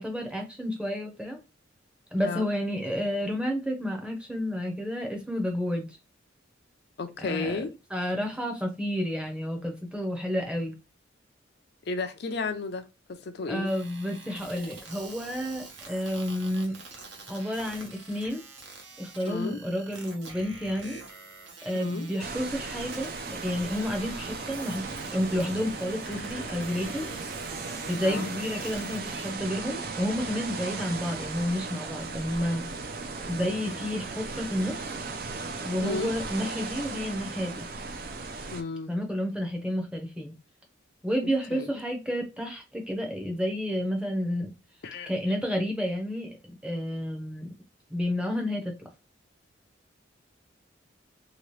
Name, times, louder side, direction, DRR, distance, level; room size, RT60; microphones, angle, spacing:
voice 1, 0.0-1.4 2.1-6.0 7.2-7.6 7.9-10.7 13.5-16.8 17.3-18.4 19.0-21.0 21.6-27.1 27.9-32.6 33.3-34.9 35.6-37.7 38.9-40.3 41.0-44.5 45.1-47.5 47.9-48.7, equal, 5° right, 0.6 m, -30 dB
voice 2, 7.0-7.7 11.9-13.7 19.3-19.6 21.7-22.1 28.0-28.3 35.8-36.1 38.5-38.9 41.5-41.7 44.8-45.1, left 4 dB, 55° left, 0.4 m, -33 dB
sound 1, 13.6-29.3, right 3 dB, 70° right, 0.9 m, -46 dB
sound 2, 22.2-38.6, right 4 dB, 50° right, 0.4 m, -37 dB
2.9 x 2.8 x 3.1 m
head